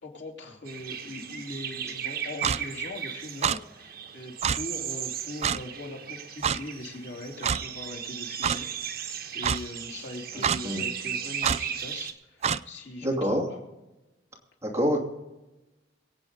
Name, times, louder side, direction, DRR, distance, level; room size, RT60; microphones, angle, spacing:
voice 1, 0.0-13.6, left 1 dB, 75° left, 0 dB, 2.9 m, -41 dB
sound 1, 0.7-12.1, right 8 dB, 55° right, 1.2 m, -36 dB
Clock, 2.4-2.6 3.4-3.6 4.4-4.6 5.4-5.6 6.4-6.6 7.4-7.6 8.4-8.6 9.4-9.6 10.4-10.6 11.4-11.6 12.4-12.6, right 7 dB, 35° right, 0.4 m, -25 dB
voice 2, 10.3-10.8 13.0-13.4 14.6-15.0, equal, 15° right, -1 dB, 2.7 m, -27 dB
23.0 x 8.8 x 4.0 m, 1.0 s
head